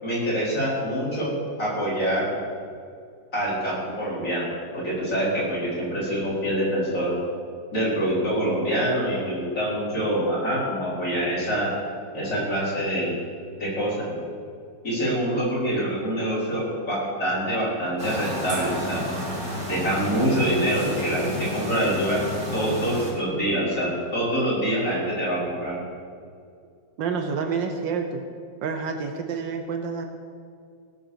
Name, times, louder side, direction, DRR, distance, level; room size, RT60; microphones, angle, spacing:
voice 1, 0.0-2.3 3.3-4.5 4.7-7.1 7.7-11.7 12.1-13.2 13.6-14.2 14.8-19.0 19.7-22.2 22.5-25.7, right 1 dB, 45° left, -7 dB, 5.0 m, -25 dB
sound 1, 18.0-23.1, equal, 45° right, 3.2 m, -31 dB
voice 2, 27.0-28.2 28.6-30.1, right 5 dB, 80° right, 5 dB, 1.7 m, -28 dB
17.5 x 7.2 x 6.9 m, 2.3 s
omnidirectional pair, 2.0 m